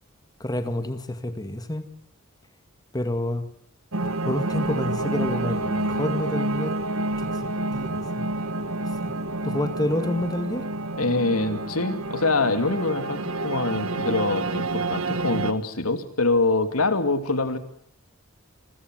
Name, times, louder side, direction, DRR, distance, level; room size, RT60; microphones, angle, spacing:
voice 1, 0.4-1.9 2.9-3.5 4.3-6.8 7.2-7.4 7.7-8.3 9.0-9.1 9.4-10.7, left 1 dB, 20° left, 2.0 m, -28 dB
sound 1, 3.9-15.5, right 2 dB, 75° right, 1.5 m, -28 dB
voice 2, 11.0-17.6, left 3 dB, 90° left, 2.7 m, -24 dB
29.0 x 22.0 x 7.9 m
head